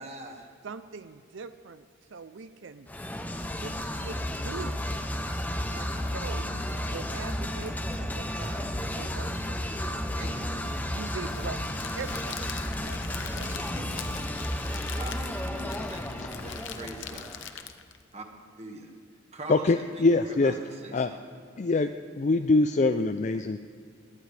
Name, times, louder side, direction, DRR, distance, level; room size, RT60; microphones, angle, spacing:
voice 1, 0.0-0.5 5.9-6.6 10.1-10.7 13.5-13.9 14.9-17.3 18.1-18.3 18.6-18.9 19.3-21.4, right 2 dB, 30° right, 2 dB, 1.7 m, -43 dB
voice 2, 0.6-2.9 3.6-4.8 5.7-6.5 6.9-9.7 10.9-13.5, right 4 dB, 65° right, 11 dB, 0.5 m, -42 dB
sound 1, 2.9-17.6, left 1 dB, 10° left, 0.7 m, -33 dB
Crackle, 11.3-18.0, left 7 dB, 60° left, 0.9 m, -42 dB
voice 3, 19.5-20.5 20.9-21.1 21.6-21.9 22.2-23.6, left 3 dB, 35° left, 9 dB, 0.4 m, -23 dB
21.5 x 17.0 x 3.4 m, 2.2 s
head